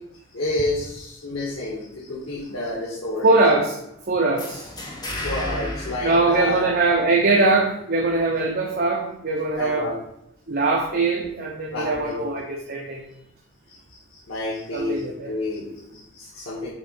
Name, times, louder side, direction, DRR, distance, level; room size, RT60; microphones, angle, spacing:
voice 1, 0.3-3.4 5.2-6.9 9.6-10.0 11.7-12.2 13.7-16.7, left 2 dB, 85° left, -6 dB, 1.7 m, -30 dB
voice 2, 3.2-3.8 4.1-4.7 6.0-9.9 10.5-13.0 14.7-15.4, right 2 dB, 45° right, 0 dB, 0.8 m, -21 dB
sound 1, 4.4-7.1, left 1 dB, 20° left, 1.2 m, -33 dB
7.2 x 3.7 x 5.3 m, 0.82 s
head